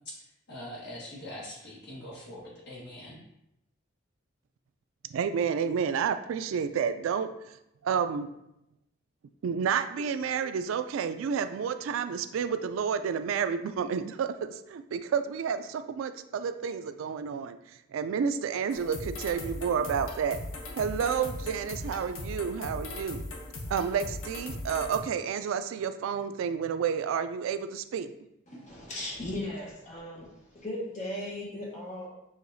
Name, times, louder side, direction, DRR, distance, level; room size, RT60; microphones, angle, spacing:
voice 1, 0.5-3.2, left 1 dB, 55° left, -5 dB, 1.5 m, -43 dB
voice 2, 5.1-7.6 7.8-8.3 9.4-17.6 17.9-20.4 20.8-23.2 23.7-28.1, right 7 dB, 80° right, 11 dB, 0.3 m, -30 dB
sound 1, 18.7-25.0, left 1 dB, 85° left, 0.8 m, -39 dB
voice 3, 28.5-32.1, left 1 dB, 35° left, -3 dB, 1.1 m, -37 dB
6.4 x 2.8 x 2.6 m, 0.84 s
head